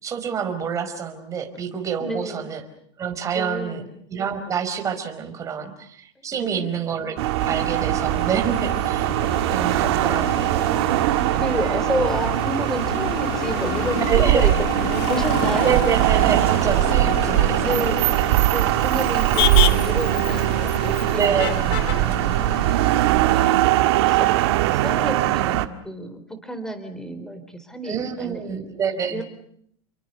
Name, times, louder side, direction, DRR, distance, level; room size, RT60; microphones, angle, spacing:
voice 1, 0.0-2.6 3.0-3.8 4.1-7.2 7.4-9.1 9.5-10.5 14.1-14.5 15.6-17.6 21.1-21.5 27.8-29.2, right 7 dB, 20° right, 6 dB, 4.9 m, -27 dB
voice 2, 2.0-2.5 3.3-3.9 6.3-6.7 11.4-15.8 17.5-18.2 18.5-23.6 24.0-28.7 29.1-29.2, equal, 5° left, 9 dB, 4.2 m, -31 dB
sound 1, 7.2-25.7, right 16 dB, 60° right, 1.8 m, -21 dB
Motor vehicle (road), 7.4-23.1, left 16 dB, 55° left, 1.2 m, -30 dB
30.0 x 23.5 x 6.8 m, 0.66 s
supercardioid pair, 150°, 15 cm